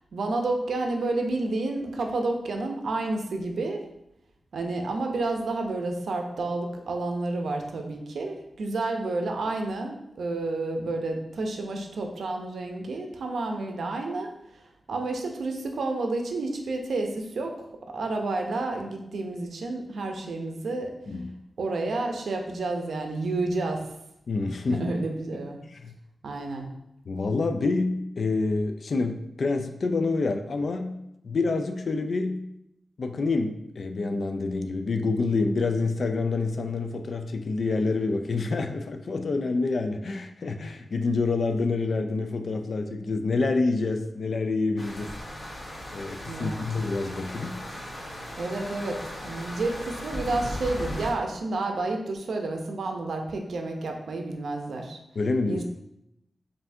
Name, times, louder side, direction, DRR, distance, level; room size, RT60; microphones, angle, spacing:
voice 1, 0.1-3.8 4.5-14.6 14.9-17.6 17.9-20.9 21.6-23.9 24.7-25.6 26.2-26.7 46.3-46.7 48.4-55.0 55.5-55.6, right 2 dB, 90° right, 3 dB, 0.5 m, -30 dB
voice 2, 21.1-21.4 24.3-24.9 25.3-25.9 27.1-32.5 33.0-45.1 45.9-47.6 55.2-55.6, left 3 dB, 60° left, 6 dB, 0.3 m, -27 dB
sound 1, 44.8-51.1, left 1 dB, 40° left, 1.0 m, -37 dB
5.5 x 2.6 x 2.6 m, 0.83 s
wide cardioid pair, 100°, 0 cm